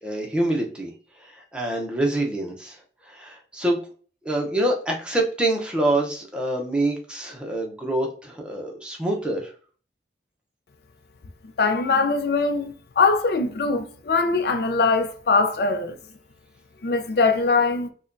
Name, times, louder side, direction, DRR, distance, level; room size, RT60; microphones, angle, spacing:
voice 1, 0.0-0.9 1.2-2.8 3.1-3.8 4.2-9.5, right 1 dB, 5° right, 0.7 m, -26 dB
voice 2, 11.6-16.0 16.8-17.9, left 4 dB, 60° left, 0.4 m, -22 dB
4.8 x 2.2 x 2.5 m
head